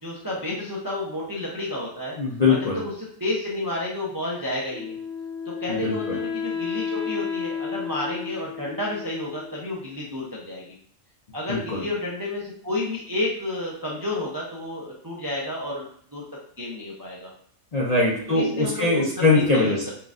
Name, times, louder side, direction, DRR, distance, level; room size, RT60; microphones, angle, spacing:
voice 1, 0.0-2.2 2.5-5.0 5.6-10.6 11.3-15.9 16.1-16.2 16.6-17.3 18.3-19.0 19.3-19.9, left 2 dB, 30° right, -4 dB, 0.3 m, -31 dB
voice 2, 2.2-2.8 5.7-6.2 11.5-11.8 17.7-19.9, left 3 dB, 50° left, -4 dB, 0.4 m, -22 dB
Wind instrument woodwind instrument, 4.7-9.8, left 6 dB, 80° left, 1.3 m, -32 dB
5.7 x 2.4 x 2.4 m, 0.62 s
omnidirectional pair, 1.5 m